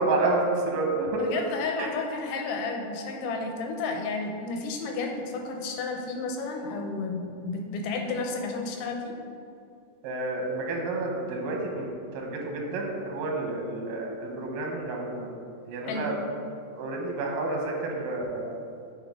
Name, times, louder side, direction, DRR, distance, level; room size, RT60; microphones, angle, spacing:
voice 1, 0.0-1.2 1.8-1.9 10.0-15.3 15.7-16.2 16.8-18.6, right 2 dB, 85° right, 0 dB, 2.5 m, -29 dB
voice 2, 1.2-9.1 15.8-16.1, left 3 dB, 90° left, 2 dB, 2.3 m, -32 dB
8.5 x 3.8 x 3.6 m, 2.4 s
omnidirectional pair, 3.8 m